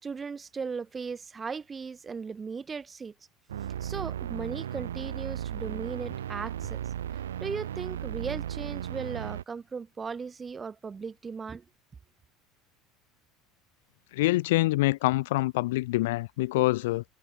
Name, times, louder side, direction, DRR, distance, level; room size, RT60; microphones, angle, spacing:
voice 1, 0.0-3.1 3.8-6.8 7.4-11.7, right 5 dB, 25° right, 3.5 m, -37 dB
sound 1, 3.5-9.4, right 10 dB, 85° right, 1.0 m, -35 dB
voice 2, 14.1-17.0, left 19 dB, 70° left, 0.8 m, -25 dB
hypercardioid pair, 75°, 0 cm